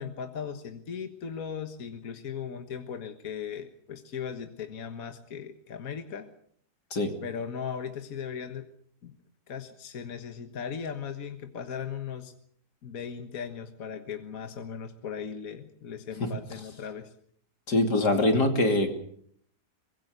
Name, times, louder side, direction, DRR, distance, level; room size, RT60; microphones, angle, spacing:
voice 1, 0.0-6.3 7.2-8.7 9.0-9.2 9.5-12.3 12.8-17.1, left 7 dB, 60° left, 7 dB, 1.8 m, -38 dB
voice 2, 17.7-18.9, left 2 dB, 80° left, 5 dB, 3.4 m, -23 dB
24.0 x 21.5 x 6.7 m, 0.64 s
omnidirectional pair, 1.7 m